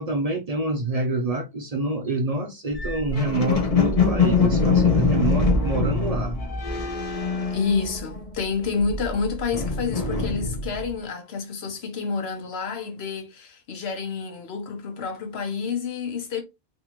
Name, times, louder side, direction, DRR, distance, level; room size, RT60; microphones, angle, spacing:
voice 1, 0.0-6.4, right 2 dB, 50° right, 0.5 m, -26 dB
sound 1, 2.7-8.3 8.6-10.9, left 4 dB, 40° left, 0.7 m, -23 dB
voice 2, 7.5-16.4, left 5 dB, 80° left, 1.1 m, -29 dB
3.5 x 2.6 x 3.0 m
omnidirectional pair, 1.0 m